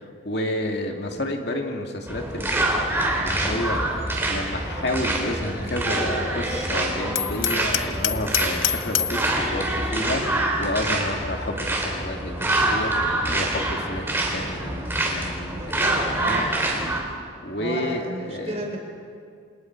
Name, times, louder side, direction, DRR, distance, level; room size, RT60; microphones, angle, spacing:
voice 1, 0.0-3.8 4.3-16.5 17.4-18.6, left 1 dB, 55° left, 2 dB, 2.4 m, -30 dB
sound 1, 2.1-17.0, right 1 dB, 10° right, 3.2 m, -26 dB
Hammer, 7.2-9.2, left 12 dB, 75° left, 0.7 m, -26 dB
voice 2, 15.5-16.5 17.6-18.8, right 1 dB, 35° right, 2 dB, 4.0 m, -34 dB
28.5 x 27.0 x 4.7 m, 2.2 s
head